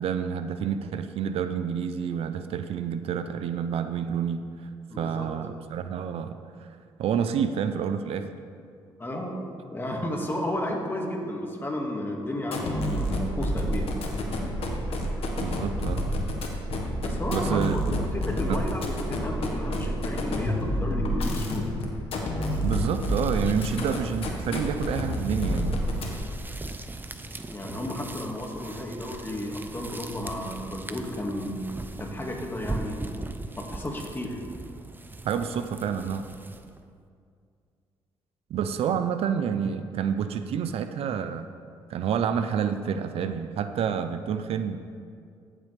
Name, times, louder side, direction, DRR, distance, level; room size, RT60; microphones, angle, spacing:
voice 1, 0.0-4.7 5.0-6.7 7.0-8.3 15.4-16.0 17.3-18.0 18.5-18.6 22.6-25.7 35.2-36.3 38.5-41.5 41.9-44.8, right 7 dB, 70° right, 9 dB, 0.5 m, -28 dB
voice 2, 4.9-5.3 9.0-9.4 9.7-13.9 17.0-21.7 27.5-31.6 32.0-33.3 33.6-34.4, left 1 dB, 20° left, 0 dB, 1.9 m, -33 dB
sound 1, 12.4-26.4, equal, 70° left, 1.4 m, -29 dB
sound 2, 22.4-36.8, right 2 dB, 20° right, 0.6 m, -40 dB
15.0 x 7.4 x 3.4 m, 2.3 s
cardioid pair, 80°, 10 cm